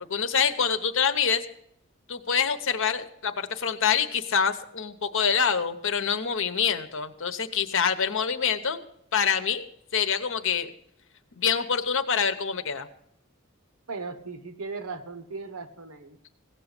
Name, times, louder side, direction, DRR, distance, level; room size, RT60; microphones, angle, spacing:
voice 1, 0.1-1.4 2.1-8.8 9.1-9.6 9.9-10.7 11.4-12.9, left 7 dB, 60° left, 10 dB, 0.9 m, -26 dB
voice 2, 13.9-16.2, right 4 dB, 80° right, 10 dB, 1.1 m, -37 dB
16.5 x 7.1 x 6.6 m, 0.72 s
head